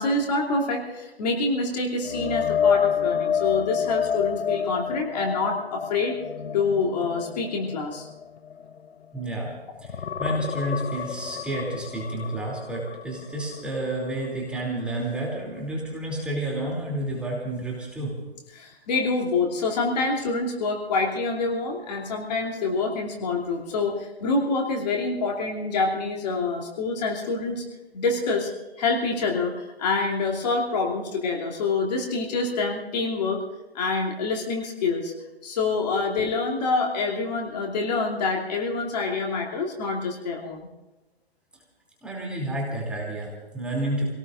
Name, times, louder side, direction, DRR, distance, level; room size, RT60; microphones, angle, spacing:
voice 1, 0.0-6.2 6.5-8.1 18.5-27.6 27.9-33.4 33.7-35.1 35.4-40.7, left 3 dB, 40° left, -1 dB, 2.9 m, -26 dB
sound 1, 2.0-9.5 9.8-13.7 14.0-14.3 17.6-17.7, left 7 dB, 85° left, 0.8 m, -28 dB
voice 2, 9.1-9.5 9.8-18.2 42.0-44.0, right 1 dB, 5° right, -4 dB, 2.9 m, -30 dB
28.5 x 18.0 x 2.6 m, 1.1 s
hypercardioid pair, 145°, 31 cm